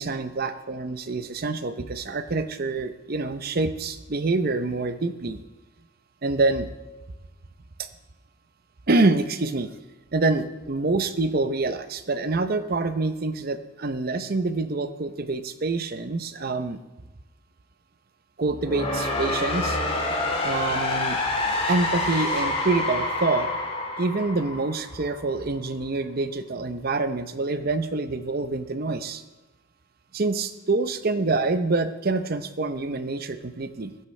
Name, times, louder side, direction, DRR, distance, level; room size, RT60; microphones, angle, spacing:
voice 1, 0.0-5.4 6.2-6.7 7.8-7.9 8.9-9.7 10.1-16.8 18.4-19.8 20.4-21.2 21.7-23.5 24.0-29.2 30.1-33.9, right 3 dB, 45° right, 11 dB, 0.7 m, -26 dB
sound 1, 18.4-25.4, left 2 dB, 25° left, 1.7 m, -27 dB
19.5 x 10.0 x 3.3 m, 1.1 s
head